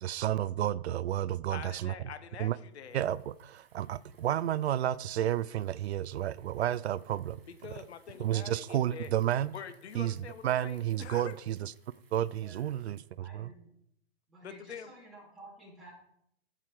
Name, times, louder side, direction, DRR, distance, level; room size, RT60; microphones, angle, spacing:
voice 1, 0.0-1.9 2.4-2.6 2.9-7.4 8.2-9.5 9.9-11.7 12.1-13.5, right 12 dB, 75° right, 0.5 m, -31 dB
voice 2, 1.5-3.0 7.5-9.1 9.5-11.4 14.4-14.9, left 7 dB, 80° left, 1.0 m, -45 dB
Bicycle, 2.7-13.2, right 5 dB, 55° right, 2.9 m, -68 dB
voice 3, 12.4-12.7 13.2-13.7 14.3-15.9, right 2 dB, ahead, 2.6 m, -53 dB
13.5 x 4.9 x 4.6 m
hypercardioid pair, 165°, 33 cm